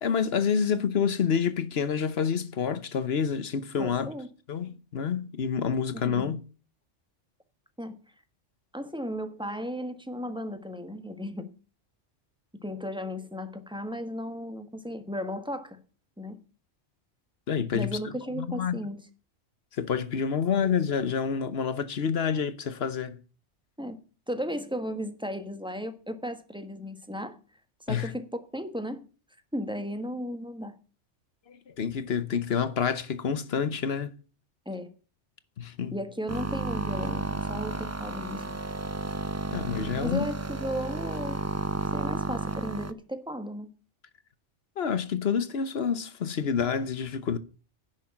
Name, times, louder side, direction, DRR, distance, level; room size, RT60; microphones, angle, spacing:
voice 1, 0.0-4.1 4.5-6.4 17.5-18.8 19.7-23.2 27.9-28.1 31.5-34.1 35.6-35.9 39.5-40.2 44.8-47.4, left 7 dB, 60° left, 1.1 m, -28 dB
voice 2, 3.8-4.3 5.9-6.3 7.8-8.0 8.7-11.6 12.6-15.8 16.2-16.4 17.7-19.0 23.8-24.0 24.3-27.4 27.8-29.1 29.5-30.7 34.6-34.9 35.9-38.5 40.0-41.4 41.9-43.7, equal, 5° right, 1.3 m, -35 dB
sound 1, 36.3-42.9, right 3 dB, 25° right, 0.4 m, -32 dB
10.5 x 6.4 x 8.6 m
omnidirectional pair, 1.2 m